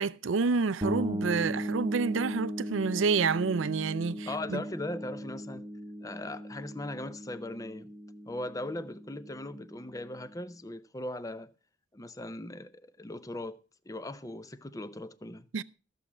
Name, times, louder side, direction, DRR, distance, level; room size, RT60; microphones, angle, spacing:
voice 1, 0.0-4.6 15.5-15.6, right 4 dB, 85° right, 0.5 m, -28 dB
sound 1, 0.8-10.4, equal, 20° right, 1.0 m, -38 dB
voice 2, 4.3-5.7 6.0-7.9 8.3-11.5 11.9-13.6 13.9-15.5, left 1 dB, 20° left, 0.6 m, -39 dB
14.5 x 7.3 x 5.9 m
head